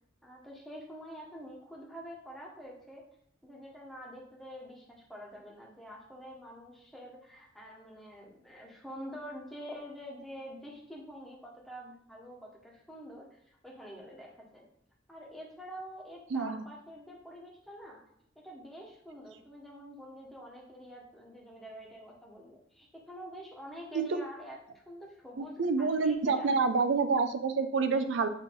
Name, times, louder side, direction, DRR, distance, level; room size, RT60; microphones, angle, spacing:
voice 1, 0.2-3.0 3.4-14.7 15.1-18.0 18.3-26.6, equal, ahead, -3 dB, 1.3 m, -47 dB
voice 2, 16.3-16.6 23.9-24.2 25.4-28.3, right 4 dB, 70° right, 9 dB, 0.5 m, -28 dB
8.1 x 3.1 x 4.6 m, 0.69 s
head